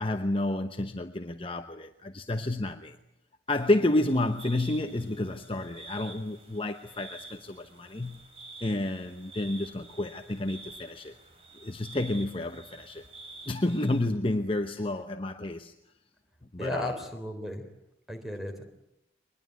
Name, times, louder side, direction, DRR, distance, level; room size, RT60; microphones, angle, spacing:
voice 1, 0.0-3.0 3.5-8.3 8.6-11.1 11.6-13.1 13.5-15.7 16.5-17.0, left 1 dB, 30° left, 0.9 m, -30 dB
sound 1, 3.5-14.1, right 2 dB, 30° right, 4.8 m, -49 dB
voice 2, 16.6-17.6 18.1-18.7, left 1 dB, ahead, 3.6 m, -35 dB
23.5 x 21.0 x 9.3 m
head